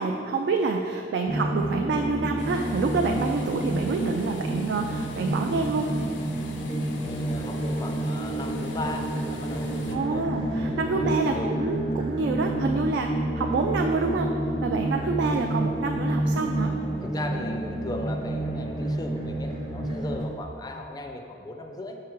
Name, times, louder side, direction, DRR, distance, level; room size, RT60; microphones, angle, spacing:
voice 1, 0.0-5.9 9.9-14.3 14.6-16.7, right 4 dB, 70° right, 3 dB, 0.3 m, -27 dB
sound 1, 1.3-20.3, right 1 dB, 30° right, 0.7 m, -29 dB
sound 2, 2.4-10.0, left 3 dB, 90° left, 0.5 m, -43 dB
voice 2, 7.0-10.3 10.9-11.6 15.5-15.8 17.0-22.0, left 1 dB, 20° left, 4 dB, 0.4 m, -37 dB
6.5 x 4.8 x 3.0 m, 2.6 s
head